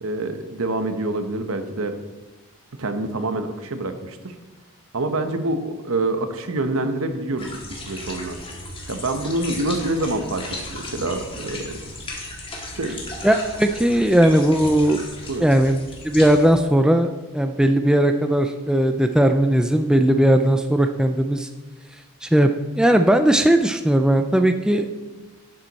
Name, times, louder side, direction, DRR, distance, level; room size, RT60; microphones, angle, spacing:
voice 1, 0.0-2.0 2.8-4.3 4.9-8.4 8.9-10.4 10.7-11.8 12.6-13.0 15.3-15.5, right 2 dB, 70° right, 8 dB, 0.9 m, -26 dB
sound 1, 7.4-16.5, left 2 dB, 25° left, 1.7 m, -35 dB
voice 2, 13.2-15.0 15.4-15.8 16.0-21.5 22.2-22.5 22.8-24.9, right 1 dB, 5° right, 6 dB, 0.4 m, -18 dB
10.5 x 7.7 x 4.1 m, 1.2 s
head